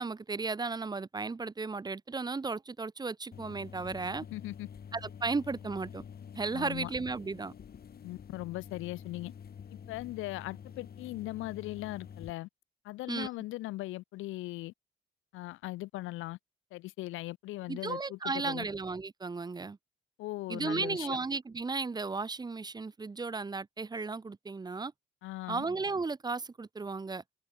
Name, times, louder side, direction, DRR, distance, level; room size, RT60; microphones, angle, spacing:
voice 1, 0.0-4.2 4.9-6.0 6.3-7.5 13.1-13.3 17.7-19.8 20.5-24.9 25.5-27.2, right 4 dB, 20° right, 0.7 m, -35 dB
sound 1, 3.3-12.3, left 7 dB, 50° left, 3.6 m, -48 dB
voice 2, 4.3-4.7 6.5-6.9 8.0-9.3 9.9-12.5 12.8-14.7 15.3-16.4 16.7-18.7 20.2-21.2 25.2-25.7, left 18 dB, 85° left, 0.4 m, -39 dB
cardioid pair, 90°, 20 cm